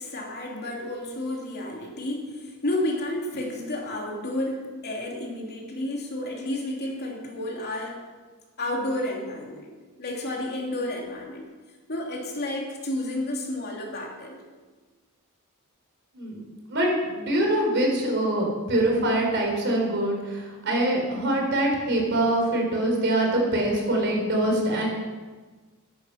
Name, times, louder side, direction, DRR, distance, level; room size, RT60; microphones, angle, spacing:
voice 1, 0.0-8.0 8.6-9.7 10.0-11.5 11.9-14.4, left 1 dB, 50° left, -1 dB, 2.8 m, -31 dB
voice 2, 16.7-24.9, right 1 dB, 55° right, 0 dB, 4.0 m, -24 dB
14.0 x 10.5 x 5.8 m, 1.4 s
head